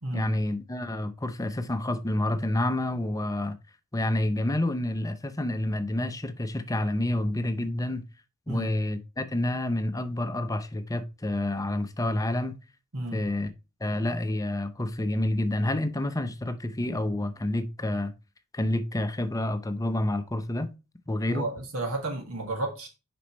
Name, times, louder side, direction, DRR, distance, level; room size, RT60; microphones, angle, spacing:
voice 1, 0.1-3.6 3.9-8.0 8.5-12.6 13.1-13.5 13.8-18.1 18.5-20.7 21.1-21.4, left 1 dB, 15° left, 0.6 m, -28 dB
voice 2, 21.3-22.9, right 2 dB, 65° right, 1.8 m, -32 dB
6.7 x 5.2 x 3.0 m
head